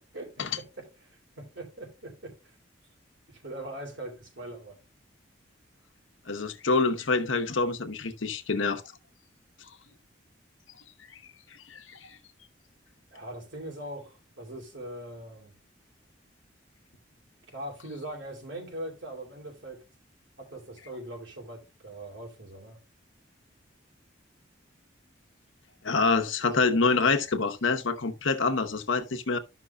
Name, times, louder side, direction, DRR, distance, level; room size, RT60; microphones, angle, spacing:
voice 1, 0.6-2.5 3.3-4.8 13.1-15.6 17.5-19.8 20.4-22.8, right 1 dB, 80° right, 2.8 m, -41 dB
voice 2, 6.3-8.8 11.7-12.1 25.8-29.4, left 4 dB, 85° left, 0.9 m, -26 dB
12.5 x 5.9 x 2.3 m
head